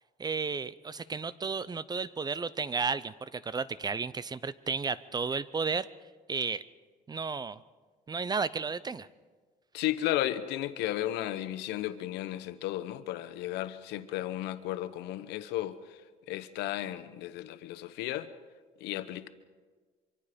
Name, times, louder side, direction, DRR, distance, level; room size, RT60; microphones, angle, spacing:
voice 1, 0.2-5.9 6.3-6.6 7.1-7.6 8.1-9.1, right 5 dB, 25° right, 18 dB, 0.6 m, -33 dB
voice 2, 9.7-15.7 16.3-18.3 18.8-19.3, left 13 dB, 90° left, 12 dB, 1.1 m, -34 dB
25.0 x 24.5 x 5.2 m, 1.5 s
cardioid pair, 110°, 17 cm